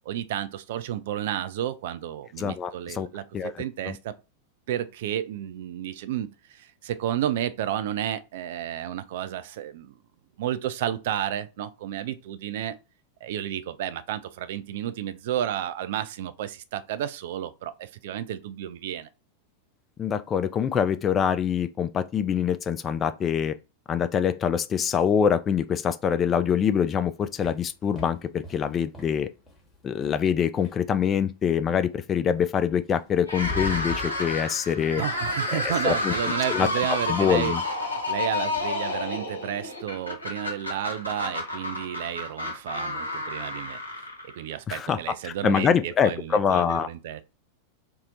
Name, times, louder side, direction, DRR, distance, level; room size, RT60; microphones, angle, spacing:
voice 1, 0.1-4.1 4.7-9.9 10.4-12.7 13.2-19.1 35.0-37.6 38.1-43.8 44.2-47.2, right 11 dB, 55° right, 0.3 m, -31 dB
voice 2, 2.4-3.1 3.3-4.0 20.0-23.6 23.9-29.3 29.8-35.0 35.5-36.7 37.1-37.6 44.7-46.9, left 7 dB, 25° left, 0.3 m, -25 dB
sound 1, 26.7-31.3 32.5-32.6 33.0-38.7, left 4 dB, 10° left, 1.0 m, -42 dB
sound 2, 33.2-44.5, left 2 dB, 80° left, 1.0 m, -30 dB
2.7 x 2.0 x 3.9 m
figure-of-eight pair, 90°, 0 cm